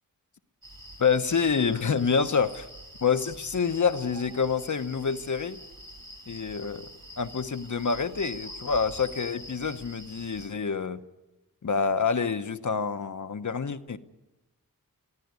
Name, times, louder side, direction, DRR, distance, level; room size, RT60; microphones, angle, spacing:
sound 1, 0.6-10.5, equal, 70° right, 4.6 m, -45 dB
voice 1, 1.0-2.7 3.0-5.6 6.3-11.0 11.6-14.0, left 5 dB, 55° left, 10 dB, 1.1 m, -27 dB
22.5 x 15.0 x 9.7 m, 1.1 s
wide cardioid pair, 80°, 35 cm